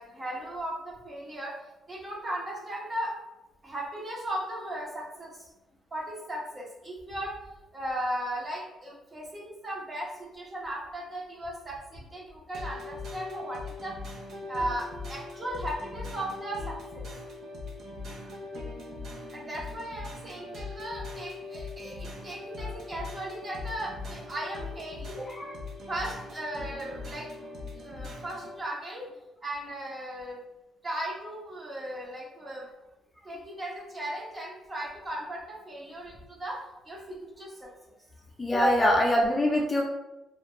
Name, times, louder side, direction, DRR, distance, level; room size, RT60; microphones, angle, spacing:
voice 1, 0.0-1.5 1.9-3.1 3.6-5.5 5.9-7.4 7.7-13.9 14.5-17.0 18.1-18.3 19.3-25.2 25.9-27.3 27.8-29.1 29.4-30.4 30.8-32.7 33.2-36.6 36.8-37.7, right 1 dB, 30° right, -3 dB, 0.8 m, -37 dB
sound 1, 12.5-28.6, left 3 dB, 65° right, 0.6 m, -40 dB
voice 2, 38.4-39.8, left 1 dB, 25° left, -2 dB, 0.5 m, -24 dB
2.5 x 2.2 x 3.0 m, 0.99 s
cardioid pair, 90°, 0 cm